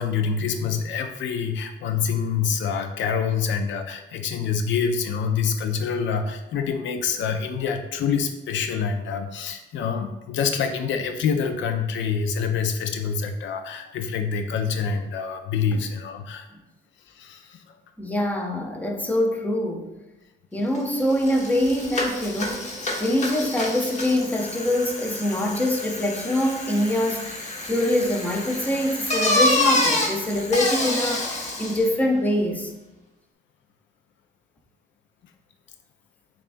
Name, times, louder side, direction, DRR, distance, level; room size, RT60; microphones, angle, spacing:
voice 1, 0.0-16.5 17.1-17.6, left 6 dB, 70° left, 7 dB, 0.4 m, -26 dB
voice 2, 18.0-19.9 20.5-22.7 23.0-32.7, left 1 dB, 10° left, 2 dB, 0.6 m, -24 dB
Bicycle, 20.7-20.8 21.1-31.9, left 2 dB, 35° left, 0.9 m, -27 dB
6.7 x 2.3 x 2.5 m, 0.98 s
cardioid pair, 90°, 20 cm